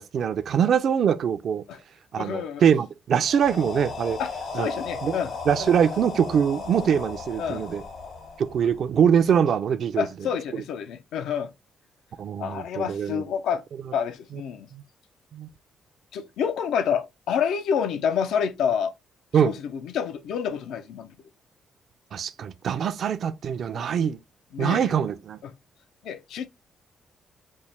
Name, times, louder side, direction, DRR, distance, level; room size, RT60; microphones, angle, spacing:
voice 1, 0.0-1.6 2.1-4.2 4.5-4.7 5.0-5.2 5.5-7.8 8.4-10.1 12.2-13.2 14.7-14.8 15.3-15.5 19.3-19.6 22.1-24.2 24.6-25.4, right 8 dB, 60° right, 0.4 m, -23 dB
voice 2, 2.2-2.6 4.2-5.4 7.4-7.7 10.0-11.5 12.4-13.6 13.9-14.7 16.1-18.9 19.4-21.1 23.7-23.9 24.5-24.9 25.4-25.5 26.0-26.5, left 7 dB, 85° left, 0.4 m, -28 dB
sound 1, 3.2-9.1, left 4 dB, 55° left, 0.8 m, -36 dB
4.3 x 2.1 x 3.2 m
cardioid pair, 115°, 0 cm